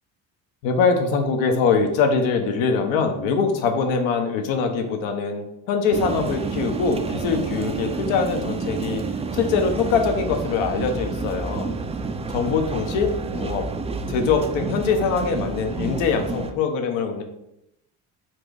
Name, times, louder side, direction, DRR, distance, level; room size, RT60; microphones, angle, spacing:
voice 1, 0.6-9.0 9.3-11.7 12.3-13.6 14.1-17.2, left 5 dB, 80° left, 5 dB, 0.9 m, -23 dB
sound 1, 5.9-16.5, right 4 dB, 15° right, 0.3 m, -29 dB
4.4 x 2.6 x 4.7 m, 0.81 s
supercardioid pair, 75°, 46 cm